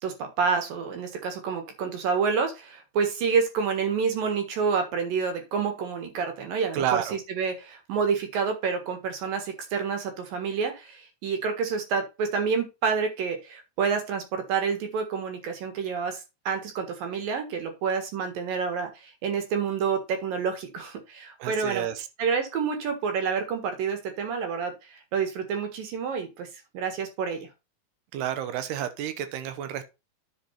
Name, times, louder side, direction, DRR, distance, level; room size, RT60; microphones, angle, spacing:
voice 1, 0.0-21.9 22.2-27.5, right 5 dB, 65° right, 3.2 m, -28 dB
voice 2, 6.7-7.2 21.4-22.1 28.1-29.9, right 10 dB, 80° right, 3.0 m, -30 dB
10.5 x 4.5 x 4.3 m
omnidirectional pair, 4.6 m